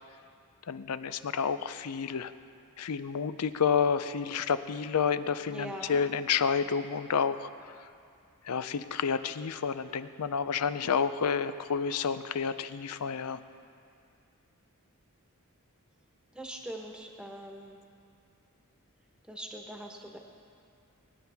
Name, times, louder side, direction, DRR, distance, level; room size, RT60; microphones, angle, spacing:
voice 1, 0.7-2.3 2.8-7.5 8.4-13.4, left 6 dB, 90° left, 12 dB, 0.5 m, -30 dB
voice 2, 5.5-5.9 16.3-17.8 19.3-20.2, equal, 5° right, 0 dB, 1.2 m, -42 dB
21.5 x 10.0 x 3.5 m, 2.4 s
head